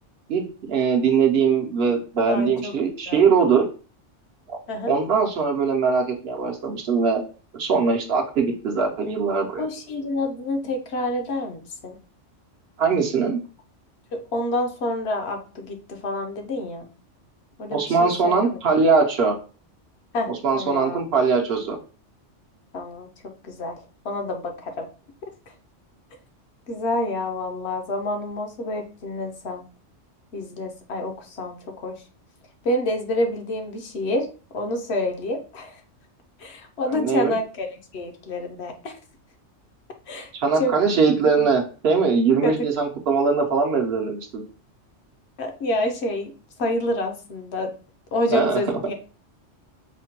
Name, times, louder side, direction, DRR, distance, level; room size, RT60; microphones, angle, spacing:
voice 1, 0.7-3.7 4.5-4.6 4.9-7.2 7.5-9.6 12.8-13.4 17.7-19.4 20.4-21.8 36.9-37.3 40.3-44.4 48.3-48.6, right 5 dB, 60° right, 2 dB, 0.8 m, -21 dB
voice 2, 2.3-2.7 3.1-3.3 4.7-4.9 9.6-12.0 14.1-16.9 17.6-18.6 20.1-21.0 22.7-23.8 24.0-24.9 26.7-29.6 30.3-32.0 32.6-34.3 34.5-35.8 36.4-39.0 40.1-40.3 40.6-40.7 41.4-41.5 42.4-42.5 45.4-46.3 46.6-47.7 48.1-48.9, left 1 dB, 65° left, 4 dB, 0.9 m, -28 dB
5.0 x 2.2 x 2.7 m, 0.36 s
omnidirectional pair, 1.3 m